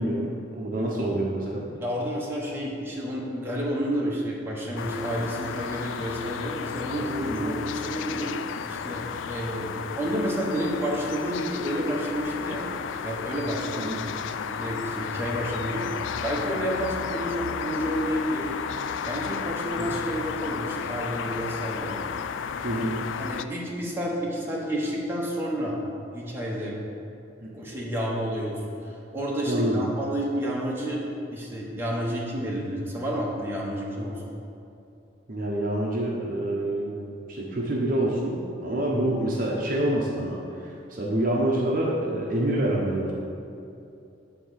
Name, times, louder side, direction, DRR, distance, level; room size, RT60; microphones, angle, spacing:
voice 1, 0.0-1.7 7.3-7.5 13.8-14.0 19.9-20.0 22.6-23.0 27.4-27.5 29.5-29.8 35.3-37.0 37.3-43.1, right 1 dB, 45° right, -3 dB, 0.8 m, -27 dB
voice 2, 1.8-8.3 8.6-12.6 13.0-14.0 14.4-15.9 16.2-18.5 19.1-22.0 22.7-22.8 23.2-25.8 26.1-26.8 27.5-31.0 31.3-34.2 38.9-39.1, equal, 10° right, -5 dB, 1.2 m, -30 dB
sound 1, 4.8-23.4, left 7 dB, 75° left, 0.3 m, -33 dB
7.6 x 3.9 x 6.3 m, 2.7 s
head